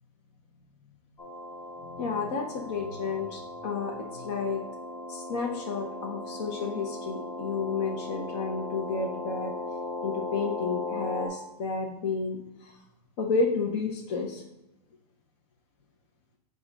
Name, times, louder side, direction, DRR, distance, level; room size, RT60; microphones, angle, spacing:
sound 1, 1.2-11.3, left 2 dB, 25° left, 1.4 m, -37 dB
voice 1, 1.8-4.6 5.1-9.5 10.0-12.7 13.2-14.4, left 4 dB, 45° left, 0 dB, 1.0 m, -31 dB
7.5 x 2.5 x 5.4 m, 0.95 s
supercardioid pair, 155°, 20 cm